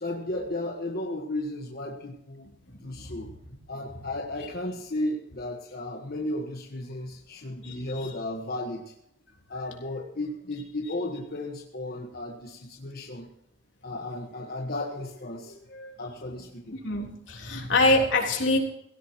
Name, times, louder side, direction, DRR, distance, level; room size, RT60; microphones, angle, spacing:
voice 1, 0.0-2.5 2.8-3.3 3.7-8.9 9.5-13.3 13.8-16.8, left 1 dB, 55° left, 1 dB, 1.4 m, -34 dB
voice 2, 7.6-8.0 16.8-18.6, left 2 dB, 85° left, -1 dB, 3.6 m, -24 dB
18.5 x 16.5 x 3.1 m, 0.78 s
head